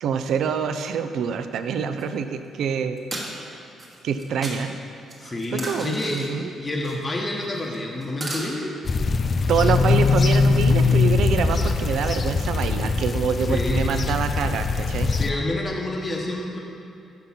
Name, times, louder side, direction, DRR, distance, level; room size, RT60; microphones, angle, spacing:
voice 1, 0.0-3.0 4.0-4.8 5.3-6.5 9.5-15.1, right 6 dB, 75° right, 9 dB, 0.4 m, -26 dB
sound 1, 2.0-2.1 3.0-3.3 3.8-4.6 5.1-6.3 6.8-7.1 7.4-8.5, right 1 dB, 30° right, 1.3 m, -34 dB
voice 2, 5.2-6.2 6.6-8.7 13.5-13.9 15.1-16.6, left 2 dB, 25° left, -1 dB, 0.9 m, -28 dB
sound 2, 8.8-15.3, left 4 dB, 40° left, 0.4 m, -21 dB
5.9 x 5.2 x 5.6 m, 2.6 s
cardioid pair, 90°, 0 cm